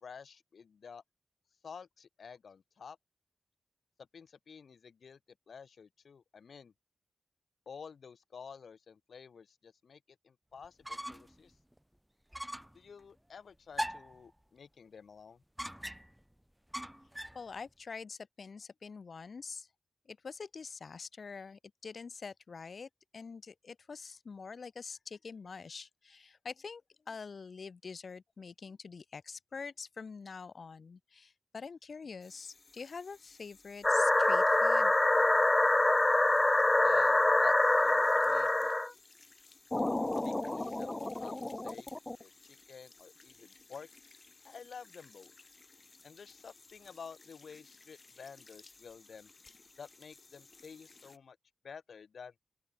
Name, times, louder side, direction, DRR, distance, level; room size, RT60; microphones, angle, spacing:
voice 1, 0.0-1.0 1.6-3.0 4.0-5.2 5.5-6.7 7.7-11.5 12.7-15.4 36.8-38.7 40.2-41.9 42.2-43.9 44.4-45.3 46.0-49.3 49.8-51.4 51.6-52.3, left 6 dB, 85° left, 2.4 m, -51 dB
sound 1, 10.6-11.4 11.7-11.8 12.3-12.8 13.7-14.2 15.6-16.2 16.7-17.4, equal, 5° right, 2.5 m, -40 dB
voice 2, 17.3-19.7 20.1-26.8 27.1-34.9, left 5 dB, 60° left, 4.5 m, -45 dB
sound 2, 32.2-51.2, left 3 dB, 40° left, 2.9 m, -60 dB
sound 3, 33.8-38.9 39.7-42.1, left 2 dB, 20° left, 0.6 m, -26 dB
open air
wide cardioid pair, 115°, 0 cm